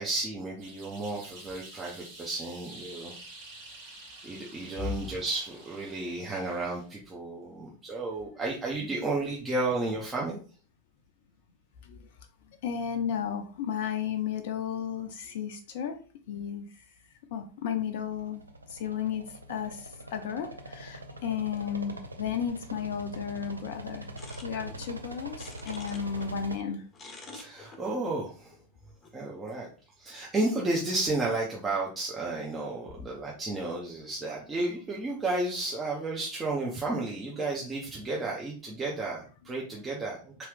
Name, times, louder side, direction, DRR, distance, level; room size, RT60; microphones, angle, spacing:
voice 1, 0.0-3.1 3.8-10.4 27.3-28.5 29.1-29.7 30.0-40.4, right 2 dB, 15° right, -3 dB, 0.7 m, -32 dB
sound 1, 0.6-6.9, right 2 dB, 50° right, 1.6 m, -49 dB
voice 2, 12.6-16.0 16.3-16.6 17.3-18.4 18.7-19.2 19.5-24.1 24.4-26.8, left 8 dB, 50° left, 6 dB, 0.5 m, -33 dB
sound 2, 17.9-26.6, right 1 dB, 80° right, 0.5 m, -43 dB
sound 3, 24.2-26.3 26.6-29.1, left 3 dB, 20° left, 0.8 m, -49 dB
3.7 x 3.0 x 3.2 m, 0.40 s
figure-of-eight pair, 90°, 0 cm